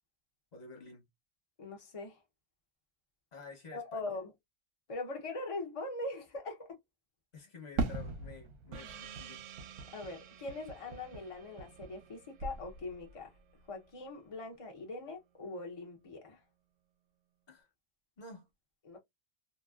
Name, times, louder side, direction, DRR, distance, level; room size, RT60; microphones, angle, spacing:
voice 1, 0.5-1.1 3.3-4.2 7.3-9.4 17.5-17.7 18.2-18.5, left 4 dB, 35° left, 0.9 m, -51 dB
voice 2, 1.6-2.2 3.7-4.3 4.9-6.8 9.9-13.3 13.7-16.4 18.9-19.0, left 2 dB, 55° left, 0.3 m, -42 dB
Fireworks, 7.8-12.1 12.4-13.2, right 4 dB, 90° right, 1.2 m, -40 dB
Gong, 8.7-13.8, right 9 dB, 65° right, 0.8 m, -53 dB
3.0 x 2.6 x 2.3 m
omnidirectional pair, 1.6 m